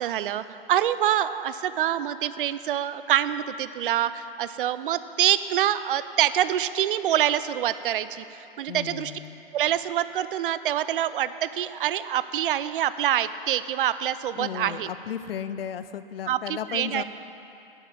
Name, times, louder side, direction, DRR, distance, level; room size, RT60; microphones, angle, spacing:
voice 1, 0.0-9.1 9.5-14.9 16.3-17.0, right 11 dB, 65° right, 14 dB, 0.5 m, -26 dB
voice 2, 8.7-9.4 14.4-17.0, left 9 dB, 80° left, 13 dB, 0.5 m, -34 dB
7.9 x 7.2 x 7.2 m, 2.8 s
hypercardioid pair, 120°, 29 cm